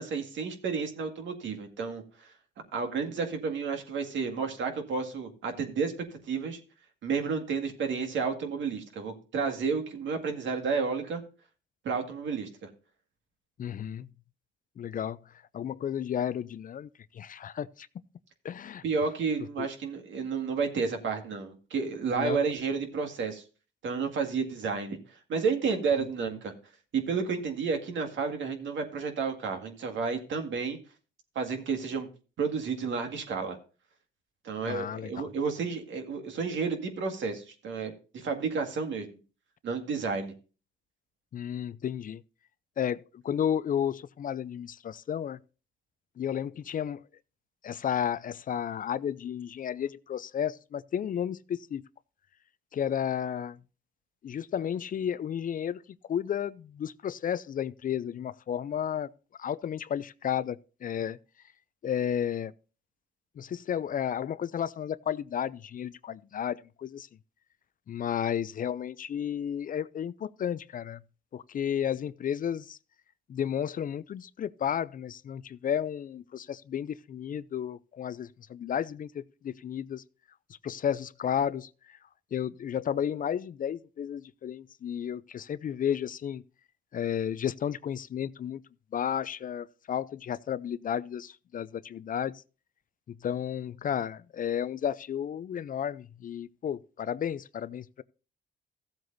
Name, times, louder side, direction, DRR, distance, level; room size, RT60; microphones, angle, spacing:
voice 1, 0.0-2.3 2.7-5.9 6.3-6.6 7.0-11.2 11.8-12.7 18.8-23.4 23.8-26.5 26.9-30.8 31.4-32.1 32.4-33.6 34.4-39.1 39.6-40.3, right 5 dB, 70° right, 2.0 m, -31 dB
voice 2, 13.6-14.1 14.8-15.2 15.5-16.9 17.1-17.9 18.4-18.8 19.6-19.7 22.1-22.4 34.6-35.3 41.3-42.2 42.8-45.4 46.2-47.0 47.6-51.8 52.7-53.6 54.2-55.8 56.1-59.1 59.4-61.2 61.8-62.5 63.4-67.1 67.9-71.0 71.3-72.8 73.3-80.0 80.6-81.7 82.3-86.4 86.9-88.6 88.9-92.3 93.2-98.0, left 9 dB, 45° left, 0.4 m, -32 dB
15.5 x 7.8 x 2.6 m
cardioid pair, 90°, 20 cm